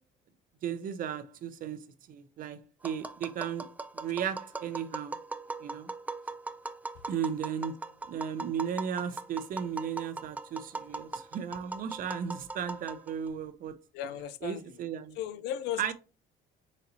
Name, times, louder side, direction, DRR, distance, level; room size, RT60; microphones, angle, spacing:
voice 1, 0.6-3.7 3.9-5.2 5.6-5.9 7.1-7.8 8.1-13.7 14.4-15.2 15.8-15.9, right 8 dB, 55° right, 0.6 m, -35 dB
Tap, 2.8-13.3, right 3 dB, 10° right, 0.3 m, -40 dB
voice 2, 13.9-14.8 15.1-15.8, left 10 dB, 85° left, 0.5 m, -36 dB
4.1 x 4.0 x 2.7 m
cardioid pair, 110°, 17 cm